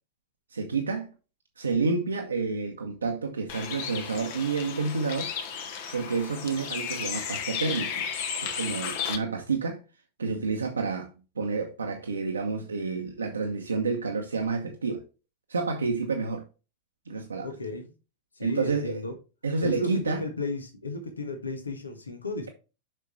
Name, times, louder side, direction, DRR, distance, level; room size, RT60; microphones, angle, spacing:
voice 1, 0.5-1.1 1.6-5.3 5.9-8.0 8.4-9.8 10.2-11.1 11.4-15.0 15.5-16.4 17.1-17.5 18.4-19.0 19.4-20.2, right 4 dB, 75° right, 1.0 m, -29 dB
Bird, 3.5-9.2, left 7 dB, 50° left, 1.3 m, -34 dB
voice 2, 17.4-17.9 18.4-19.1 19.6-22.5, left 2 dB, 75° left, 1.4 m, -34 dB
7.6 x 5.7 x 3.2 m
figure-of-eight pair, 90°, 0 cm